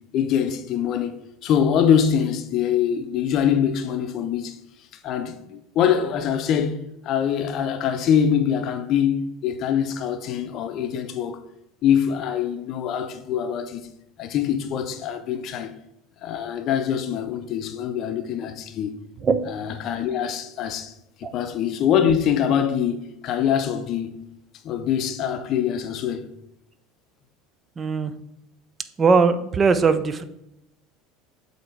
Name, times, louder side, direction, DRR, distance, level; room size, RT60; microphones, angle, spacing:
voice 1, 0.1-4.6 5.0-11.4 11.8-13.9 14.2-15.7 16.2-18.9 19.5-20.9 21.2-24.2 24.6-26.3, left 8 dB, 50° left, 0.6 m, -24 dB
voice 2, 27.8-28.1 29.0-30.2, right 5 dB, 30° right, 0.5 m, -20 dB
7.6 x 2.8 x 4.5 m
hypercardioid pair, 75°, 0 cm